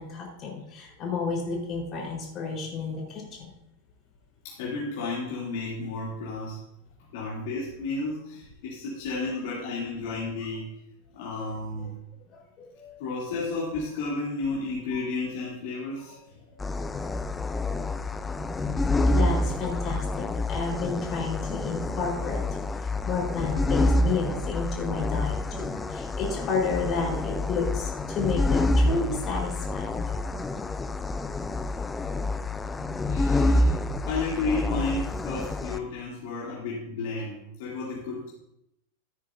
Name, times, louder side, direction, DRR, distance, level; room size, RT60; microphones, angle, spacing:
voice 1, 0.0-3.5 12.3-13.0 16.0-16.1 16.9-17.1 19.1-22.4 22.8-30.2, left 4 dB, 30° left, -2 dB, 4.2 m, -31 dB
voice 2, 4.4-6.6 7.1-10.7 11.1-11.9 13.0-16.5 32.3-32.4 33.1-33.8 34.1-38.3, left 3 dB, 50° left, -6 dB, 2.9 m, -32 dB
sound 1, 16.6-35.8, left 2 dB, 10° left, 0.6 m, -27 dB
15.0 x 9.5 x 2.7 m, 0.82 s
figure-of-eight pair, 90°, 0 cm